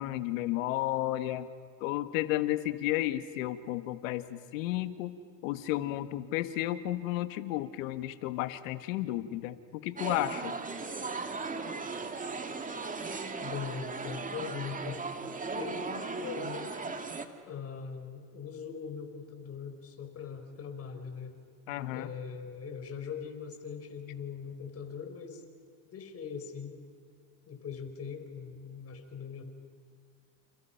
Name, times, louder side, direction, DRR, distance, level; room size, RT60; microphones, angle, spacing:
voice 1, 0.0-1.5 1.8-5.1 5.4-10.5 21.7-22.1, left 15 dB, 85° left, 11 dB, 1.7 m, -32 dB
sound 1, 10.0-17.2, right 4 dB, 20° right, 2.1 m, -37 dB
voice 2, 13.4-15.1 15.5-17.0 17.5-21.4 21.9-25.4 25.8-26.8 27.5-29.4, left 6 dB, 35° left, 6 dB, 4.8 m, -41 dB
29.5 x 29.5 x 5.9 m, 2.1 s
supercardioid pair, 105°, 39 cm